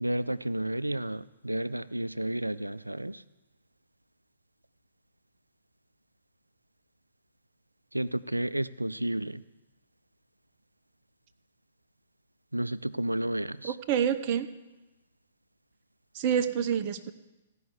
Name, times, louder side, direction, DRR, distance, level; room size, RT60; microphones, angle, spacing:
voice 1, 0.0-3.2 7.9-9.4 12.5-13.8, right 1 dB, 90° right, 17 dB, 0.4 m, -31 dB
voice 2, 13.6-14.5 16.1-17.1, right 8 dB, 40° right, 10 dB, 0.8 m, -27 dB
16.0 x 5.6 x 8.0 m, 1.1 s
figure-of-eight pair, 120°, 0 cm